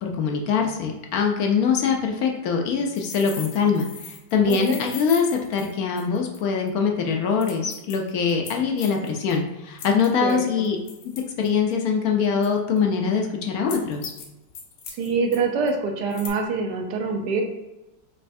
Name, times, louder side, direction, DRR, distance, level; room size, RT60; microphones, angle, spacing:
voice 1, 0.0-10.8 11.4-14.1, left 6 dB, 65° left, 2 dB, 1.0 m, -23 dB
sound 1, 2.9-6.4 6.7-6.8 7.4-9.3 9.8-11.7 12.4-12.8 13.7-14.2 14.5-15.4 15.7-15.8 16.1-16.3, left 6 dB, 85° left, 1.5 m, -39 dB
voice 2, 4.5-4.8 10.2-10.7 15.0-17.4, right 4 dB, 70° right, 3 dB, 1.3 m, -25 dB
5.4 x 3.3 x 2.7 m, 0.96 s
omnidirectional pair, 1.9 m